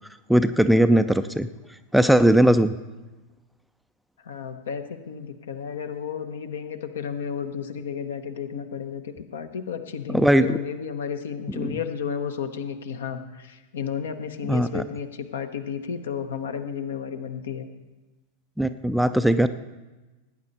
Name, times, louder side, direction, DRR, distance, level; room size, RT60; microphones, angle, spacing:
voice 1, 0.3-1.5 1.9-2.7 10.1-10.6 11.6-11.7 14.5-14.8 18.6-19.5, right 1 dB, ahead, 11 dB, 0.4 m, -19 dB
voice 2, 4.2-17.7, left 7 dB, 65° left, 9 dB, 1.0 m, -32 dB
17.5 x 9.6 x 4.1 m, 1.2 s
figure-of-eight pair, 90°, 0 cm